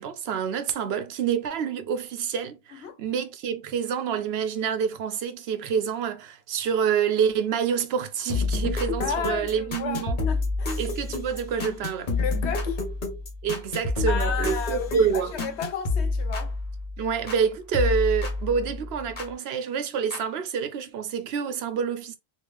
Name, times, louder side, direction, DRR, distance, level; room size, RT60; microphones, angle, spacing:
voice 1, 0.0-10.2 10.8-12.1 13.4-15.3 17.0-22.2, right 7 dB, 75° right, 0.8 m, -27 dB
sound 1, 8.3-17.4 17.7-19.3 20.1-20.2, left 3 dB, 50° left, 1.0 m, -29 dB
voice 2, 9.0-10.8 12.2-12.8 14.1-16.5, left 7 dB, 90° left, 1.0 m, -33 dB
3.1 x 2.4 x 3.4 m
omnidirectional pair, 1.1 m